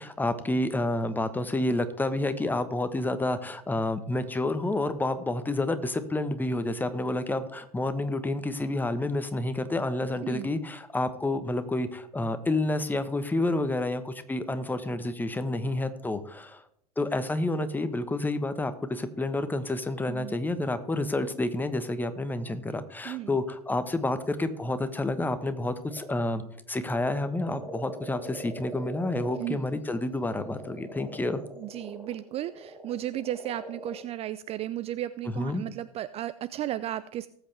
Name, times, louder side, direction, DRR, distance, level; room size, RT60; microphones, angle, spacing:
voice 1, 0.0-16.6 17.0-26.4 26.7-31.4 35.3-35.6, left 2 dB, 10° left, 10 dB, 1.2 m, -29 dB
voice 2, 23.0-23.4 29.4-29.7 31.6-37.3, right 13 dB, 30° right, 16 dB, 0.4 m, -34 dB
sound 1, 25.9-26.5 26.7-29.5 30.1-34.0, right 1 dB, 10° right, 3.5 m, -43 dB
18.5 x 8.1 x 3.4 m, 0.68 s
figure-of-eight pair, 85°, 19 cm